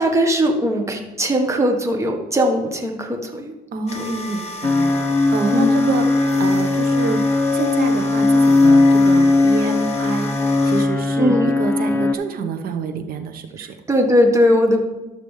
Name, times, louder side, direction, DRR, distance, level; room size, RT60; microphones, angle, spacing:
voice 1, 0.0-3.5 3.9-4.1 5.5-5.9 11.2-11.5 13.6-14.9, equal, 15° right, 3 dB, 1.3 m, -19 dB
voice 2, 3.7-4.9 5.3-6.1 6.4-7.2 7.5-10.3 10.6-13.8, right 4 dB, 60° right, 7 dB, 1.0 m, -27 dB
sound 1, 3.9-10.9, left 1 dB, 40° left, 1.3 m, -34 dB
sound 2, 4.6-12.1, left 2 dB, 10° left, 0.6 m, -17 dB
12.0 x 6.8 x 3.2 m, 1.1 s
cardioid pair, 110°, 17 cm